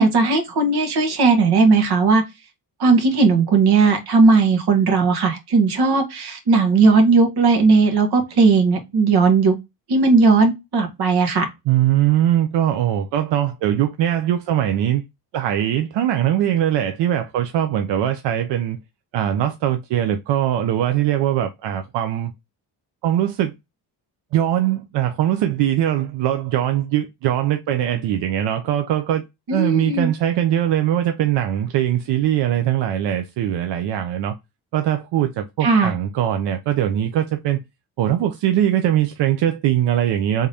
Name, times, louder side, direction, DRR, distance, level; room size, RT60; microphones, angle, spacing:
voice 1, 0.0-2.2 2.8-9.5 9.9-11.5 29.5-30.1 35.6-35.9, right 4 dB, 65° right, 1.3 m, -16 dB
voice 2, 11.7-15.0 15.3-18.8 19.1-22.3 23.0-23.5 24.3-29.2 29.5-34.3 34.7-37.6 38.0-40.5, right 11 dB, 90° right, 0.6 m, -21 dB
3.6 x 2.7 x 3.3 m
cardioid pair, 150°, 41 cm